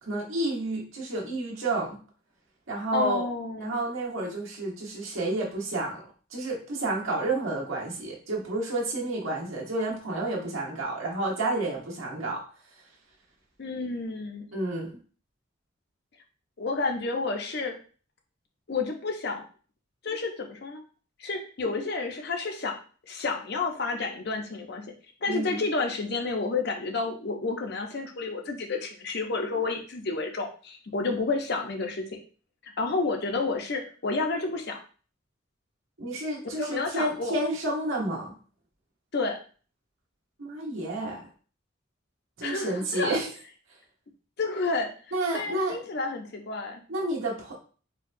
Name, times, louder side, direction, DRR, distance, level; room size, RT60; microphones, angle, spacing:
voice 1, 0.0-2.0 2.7-3.2 3.6-6.0 6.3-12.4 14.5-15.0 25.3-25.6 36.0-38.3 40.4-41.3 42.4-43.3 45.1-45.8 46.9-47.6, right 2 dB, 80° right, -3 dB, 1.2 m, -30 dB
voice 2, 2.9-3.8 13.6-14.5 16.6-17.7 18.7-19.4 20.0-20.8 21.2-22.8 23.1-24.8 25.2-32.0 32.8-34.8 36.6-37.4 39.1-39.4 42.4-43.2 44.4-44.9 45.3-46.8, left 3 dB, 55° left, 3 dB, 0.6 m, -30 dB
4.5 x 2.2 x 2.6 m, 0.39 s
head